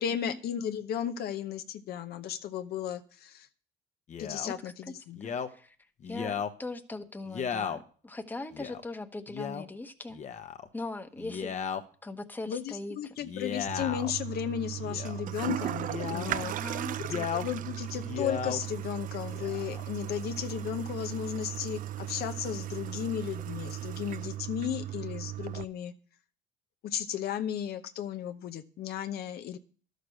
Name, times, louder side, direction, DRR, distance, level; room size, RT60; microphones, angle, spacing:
voice 1, 0.0-3.5 4.2-5.2 12.5-16.6 17.3-25.9 26.8-29.6, left 9 dB, 70° left, 9 dB, 0.9 m, -35 dB
Male speech man speaking, 4.1-4.5 5.2-5.5 6.0-6.5 7.3-7.8 8.5-8.8 9.3-9.6 10.1-10.7 11.2-11.8 13.2-14.1 14.8-15.2 15.8-16.3 17.0-17.5 17.9-18.6 19.3-19.8, left 7 dB, 45° left, 1.0 m, -35 dB
voice 2, 5.2-5.8 6.1-10.2 10.7-11.5 12.0-13.1 16.3-17.3, left 2 dB, 10° left, 8 dB, 1.0 m, -40 dB
Toilet flush, 13.7-25.6, right 13 dB, 55° right, 0.4 m, -37 dB
12.0 x 6.6 x 6.5 m, 0.42 s
cardioid pair, 110°, 17 cm